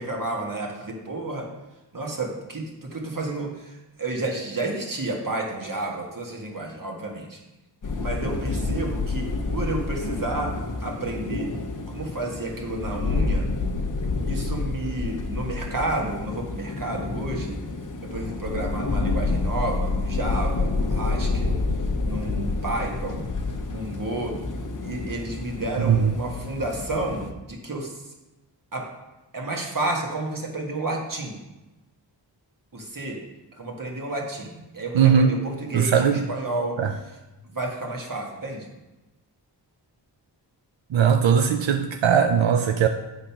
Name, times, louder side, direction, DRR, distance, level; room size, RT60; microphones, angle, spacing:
voice 1, 0.0-1.5 1.9-3.7 4.0-7.4 8.0-10.5 10.8-11.5 11.9-13.5 14.3-17.7 18.1-21.6 22.0-23.3 23.7-24.4 24.8-27.9 28.7-28.8 29.3-31.4 32.7-33.2 33.6-36.8 37.5-38.7, right 2 dB, 45° right, 0 dB, 1.5 m, -31 dB
sound 1, 7.8-27.3, left 3 dB, 45° left, 0.8 m, -28 dB
voice 2, 25.8-26.1 34.9-35.3 35.7-36.2 36.8-36.9 40.9-42.9, right 7 dB, 90° right, 6 dB, 0.6 m, -19 dB
8.6 x 3.8 x 5.8 m, 1.1 s
wide cardioid pair, 75°, 44 cm